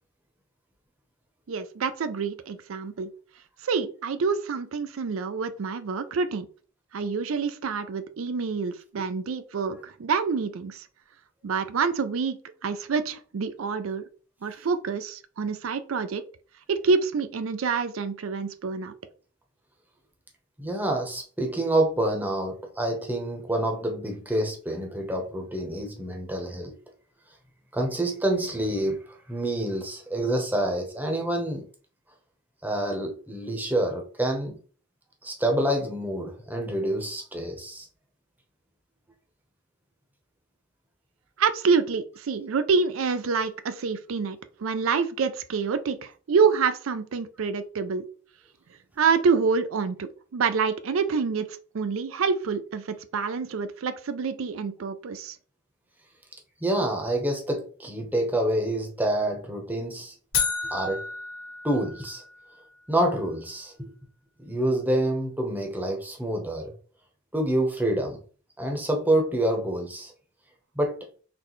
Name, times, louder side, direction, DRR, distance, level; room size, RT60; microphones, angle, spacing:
voice 1, 1.5-3.1 3.6-6.5 6.9-10.9 11.4-12.4 12.6-14.0 14.4-16.2 16.7-18.9 41.4-48.1 49.0-55.4, right 5 dB, 85° right, 10 dB, 0.4 m, -27 dB
voice 2, 20.6-26.7 27.7-29.0 29.3-31.6 32.6-34.5 35.2-37.9 56.6-60.1 60.7-61.0 61.6-62.2 62.9-63.9 64.4-66.7 67.3-68.2 68.6-70.1 70.8-71.0, right 1 dB, 10° right, 2 dB, 0.8 m, -27 dB
sound 1, 60.3-62.5, left 6 dB, 75° left, 1.3 m, -31 dB
4.1 x 3.2 x 3.1 m, 0.40 s
head